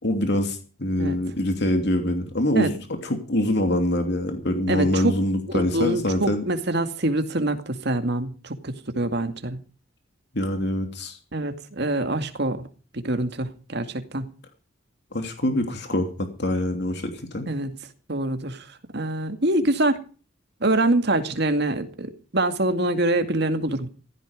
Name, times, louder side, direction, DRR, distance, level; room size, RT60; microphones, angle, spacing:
voice 1, 0.0-2.7 3.0-6.4 10.3-11.2 15.1-17.5, left 1 dB, 60° left, 2.9 m, -24 dB
voice 2, 4.7-5.2 5.5-9.6 11.3-12.6 12.9-14.3 17.5-17.7 18.1-18.6 18.9-20.0 20.6-23.9, right 1 dB, 60° right, 2.2 m, -25 dB
15.5 x 15.5 x 5.0 m
head